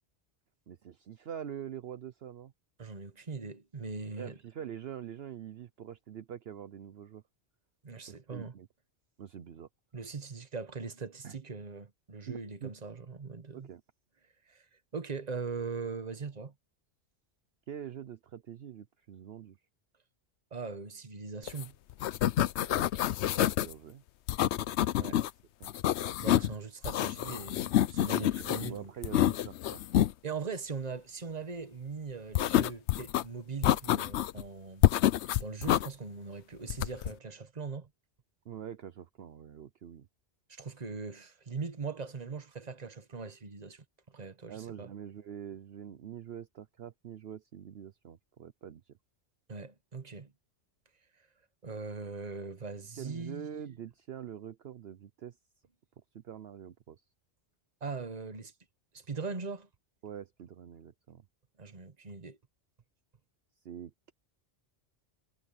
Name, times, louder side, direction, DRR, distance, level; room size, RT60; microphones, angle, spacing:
voice 1, 0.7-2.5 4.2-7.2 8.0-8.7 9.2-9.7 11.2-11.4 12.3-12.7 13.5-13.8 17.7-19.6 23.6-24.0 25.0-25.2 25.6-25.7 28.2-30.0 38.4-40.1 44.5-48.8 53.0-55.3 56.1-57.0 60.0-61.2 63.6-64.1, right 9 dB, 65° right, 1.0 m, -45 dB
voice 2, 2.8-4.4 7.8-8.5 9.9-13.7 14.5-14.6 14.9-16.5 20.5-21.7 25.0-25.2 26.2-28.9 30.2-34.8 35.3-37.9 40.5-43.8 44.1-44.9 49.5-50.3 51.6-53.5 57.8-58.5 58.9-59.7 61.6-62.4, right 4 dB, 35° right, 1.3 m, -40 dB
sound 1, 21.5-21.6 21.9-23.7 24.3-25.3 25.6-26.5 26.8-28.7 29.0-30.1 32.3-33.2 33.6-34.4 34.8-35.9 36.7-37.1, left 12 dB, 75° left, 0.9 m, -27 dB
omnidirectional pair, 1.2 m